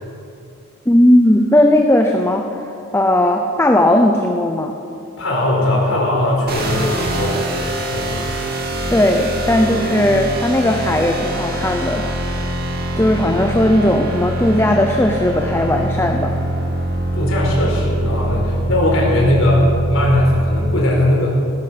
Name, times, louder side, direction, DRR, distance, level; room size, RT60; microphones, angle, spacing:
voice 1, 0.9-2.5 2.9-4.7 8.9-12.4 13.0-16.3, left 1 dB, 10° left, 3 dB, 0.7 m, -16 dB
voice 2, 5.2-7.4 7.9-8.2 17.1-21.4, left 1 dB, 65° left, -3 dB, 4.7 m, -18 dB
sound 1, 6.5-20.8, right 1 dB, 45° right, 2.2 m, -23 dB
18.5 x 10.5 x 6.4 m, 2.5 s
head